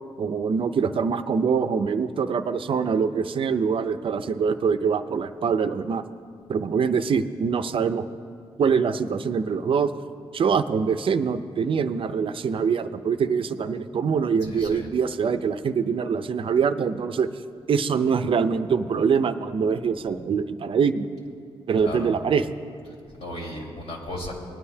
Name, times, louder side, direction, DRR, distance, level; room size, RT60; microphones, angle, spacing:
voice 1, 0.2-6.0 6.5-8.0 8.6-9.9 10.3-17.3 17.7-21.1 21.7-22.4, right 6 dB, 55° right, 10 dB, 0.6 m, -24 dB
voice 2, 14.4-14.9 21.8-22.1 22.8-24.3, left 1 dB, 75° left, -3 dB, 3.0 m, -36 dB
20.0 x 9.9 x 2.8 m, 2.3 s
cardioid pair, 80°, 11 cm